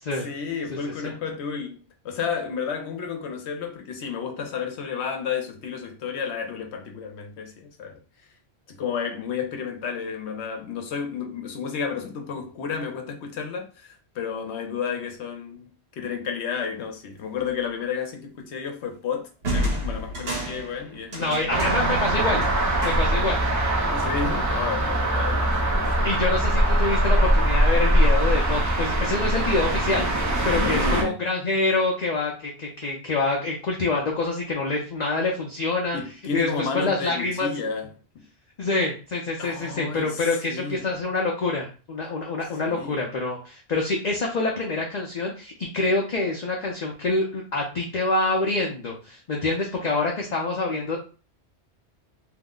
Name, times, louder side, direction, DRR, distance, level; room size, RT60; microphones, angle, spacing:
voice 1, 0.1-8.0 8.7-22.0 23.9-26.1 30.5-31.2 35.9-38.3 39.4-40.8 42.7-43.0, left 6 dB, 75° left, 0.9 m, -32 dB
sound 1, 17.4-17.6 19.4-23.4, equal, 65° right, 1.2 m, -31 dB
voice 2, 21.1-22.4 22.8-23.4 26.0-30.1 30.4-36.0 36.3-37.5 38.6-51.0, left 3 dB, 50° left, 0.6 m, -26 dB
sound 2, 21.5-31.0, right 1 dB, 25° right, 0.4 m, -22 dB
2.8 x 2.1 x 3.6 m
omnidirectional pair, 1.1 m